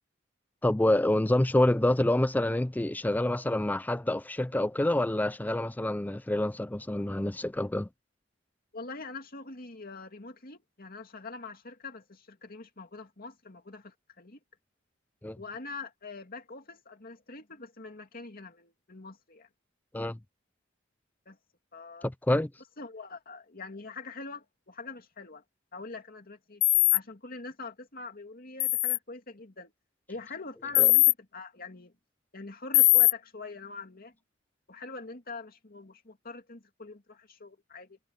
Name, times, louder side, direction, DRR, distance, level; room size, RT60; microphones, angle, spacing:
voice 1, 0.6-7.9 15.2-15.4 19.9-20.2 22.0-22.5 30.8-30.9, left 1 dB, 10° left, 0.4 m, -27 dB
voice 2, 8.7-14.4 15.4-19.5 21.3-21.4 21.7-22.1 22.8-25.4 25.7-26.6 26.9-29.7 30.1-31.9 32.3-34.1 34.7-38.0, left 3 dB, 50° left, 2.4 m, -44 dB
sound 1, 26.6-27.0 28.6-29.0 30.7-31.1 32.7-33.1, left 22 dB, 80° left, 0.4 m, -20 dB
head